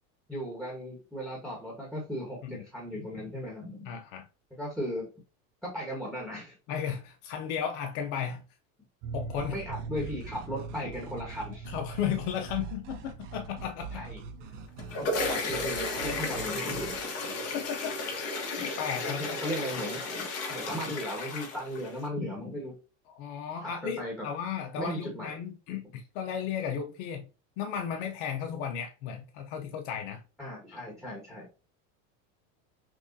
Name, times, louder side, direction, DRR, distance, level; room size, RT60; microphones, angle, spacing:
voice 1, 0.3-3.9 4.5-5.1 5.6-6.5 9.5-11.7 13.9-14.2 15.5-16.9 18.6-18.7 19.0-22.7 23.6-24.1 24.8-25.4 30.4-31.5, equal, ahead, 1.3 m, -37 dB
voice 2, 3.8-4.3 6.7-8.4 9.1-9.6 11.7-14.0 17.5-17.9 18.5-19.4 23.1-27.3 27.6-30.2 30.7-30.8, left 8 dB, 65° left, 0.7 m, -34 dB
sound 1, 9.0-18.6 18.9-19.0 19.3-19.4, right 4 dB, 40° right, 0.5 m, -44 dB
sound 2, 9.4-17.0, right 5 dB, 75° right, 1.2 m, -44 dB
sound 3, 14.6-22.1, left 2 dB, 40° left, 1.3 m, -34 dB
6.0 x 2.4 x 2.7 m
supercardioid pair, 140°, 37 cm